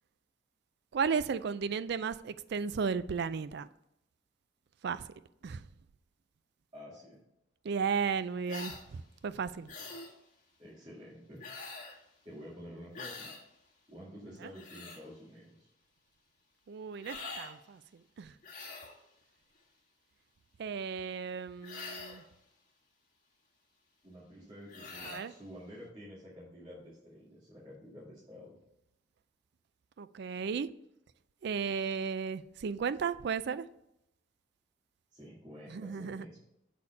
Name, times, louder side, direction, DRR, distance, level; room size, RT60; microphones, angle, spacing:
voice 1, 0.9-3.7 4.8-5.1 5.4-5.6 7.6-9.7 14.4-14.5 16.7-17.8 18.2-18.3 20.6-22.2 25.0-25.3 30.0-30.7 31.4-33.6 35.7-36.2, right 6 dB, 55° right, 0.4 m, -34 dB
voice 2, 6.7-7.2 10.6-11.4 12.2-13.3 13.9-15.7 24.0-28.6 35.1-36.4, equal, 25° right, 2.2 m, -49 dB
sound 1, 8.5-8.8 9.7-10.1 11.4-12.0 12.9-13.4 14.4-15.0 17.0-17.5 18.4-19.0 21.6-22.3 24.7-25.3, left 3 dB, 40° left, 1.5 m, -44 dB
7.1 x 4.3 x 5.4 m
head